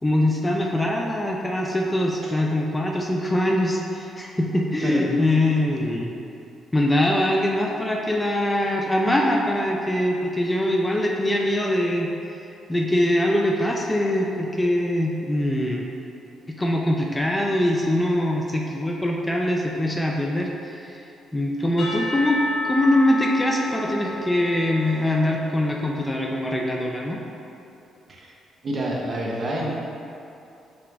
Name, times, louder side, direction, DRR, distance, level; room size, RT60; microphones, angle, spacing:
voice 1, 0.0-6.1 6.7-12.1 12.7-15.8 16.5-21.1 21.3-27.2, left 1 dB, 15° left, -1 dB, 0.4 m, -23 dB
Percussion / Church bell, 21.8-25.9, left 1 dB, 65° left, 1.1 m, -31 dB
voice 2, 28.6-29.8, right 1 dB, 40° right, -3 dB, 0.7 m, -28 dB
4.9 x 2.3 x 3.4 m, 2.8 s
cardioid pair, 90°, 0 cm